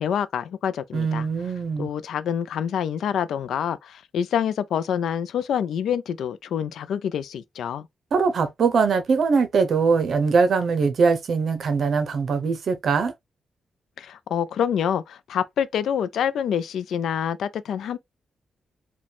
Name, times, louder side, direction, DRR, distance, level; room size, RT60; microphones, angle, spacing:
voice 1, 0.0-1.3 1.8-7.9 14.0-18.0, left 8 dB, 80° left, 0.4 m, -26 dB
voice 2, 0.9-1.9 8.1-13.1, right 5 dB, 50° right, 0.7 m, -22 dB
5.0 x 2.3 x 3.4 m
wide cardioid pair, 160°, 0 cm